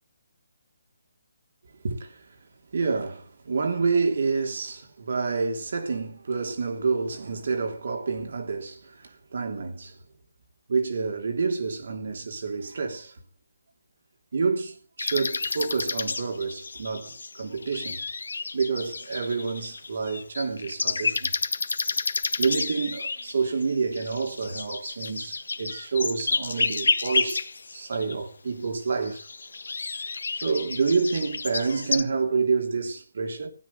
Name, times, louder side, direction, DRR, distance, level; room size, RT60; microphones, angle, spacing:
voice 1, 1.8-2.2 2.7-10.0 10.7-13.1 14.3-18.0 18.5-21.3 22.4-27.5 27.7-29.3 30.3-33.5, right 4 dB, 60° right, 3.3 m, -28 dB
sound 1, 15.0-28.2 28.9-32.0, left 4 dB, 75° left, 1.6 m, -30 dB
16.0 x 10.5 x 5.4 m
figure-of-eight pair, 150°, 0 cm